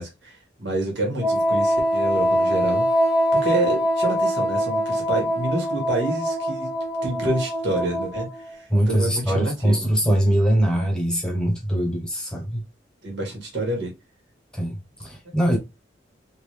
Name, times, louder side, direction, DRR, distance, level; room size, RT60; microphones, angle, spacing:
voice 1, 0.0-2.9 3.3-6.7 7.0-9.9 11.2-11.3 11.8-11.9 13.0-13.9, right 1 dB, 85° right, 1.8 m, -28 dB
Wind instrument woodwind instrument, 1.2-8.5, equal, 40° right, 1.1 m, -23 dB
voice 2, 8.7-12.6 14.5-15.6, equal, 5° left, 0.9 m, -22 dB
3.7 x 2.6 x 3.2 m
head